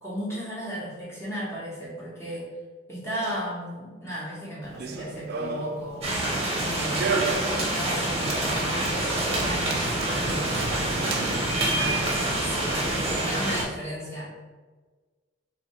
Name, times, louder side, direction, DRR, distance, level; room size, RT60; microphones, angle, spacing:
voice 1, 0.0-2.5 2.9-6.1 6.6-11.2 11.6-12.0 12.4-12.8 13.1-14.2, equal, 15° left, -7 dB, 1.1 m, -35 dB
Run, 4.6-12.3, right 4 dB, 50° right, 0.3 m, -35 dB
sound 1, 6.0-13.6, right 1 dB, 30° right, 0.8 m, -26 dB
2.8 x 2.7 x 4.2 m, 1.4 s
head